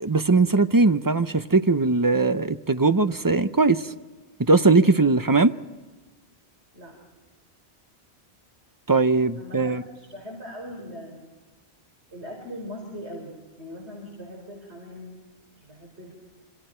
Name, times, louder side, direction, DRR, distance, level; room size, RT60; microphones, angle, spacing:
voice 1, 0.0-3.9 4.5-5.5 8.9-9.8, right 3 dB, 25° right, 10 dB, 0.6 m, -20 dB
voice 2, 9.4-11.3 12.1-13.3 13.6-15.2 15.6-16.2, equal, 90° right, -1 dB, 5.3 m, -40 dB
27.0 x 26.0 x 4.5 m, 1.3 s
omnidirectional pair, 1.1 m